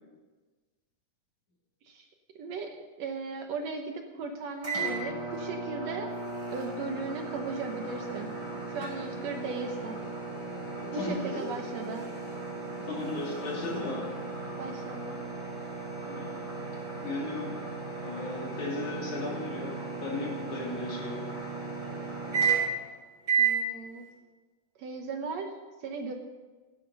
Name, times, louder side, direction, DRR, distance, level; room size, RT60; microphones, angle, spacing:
voice 1, 2.4-6.1 6.5-8.3 8.7-10.0 10.9-12.1 14.6-15.2 23.4-24.1 24.8-25.5 25.8-26.1, right 4 dB, 65° right, 4 dB, 2.0 m, -37 dB
sound 1, 4.6-22.9 23.2-23.6, right 5 dB, 20° right, 5.5 m, -34 dB
voice 2, 10.9-11.4 12.8-14.3 16.1-16.3 17.0-17.6 18.0-21.3, left 2 dB, 65° left, -3 dB, 4.3 m, -36 dB
17.0 x 9.7 x 5.5 m, 1.3 s
omnidirectional pair, 3.6 m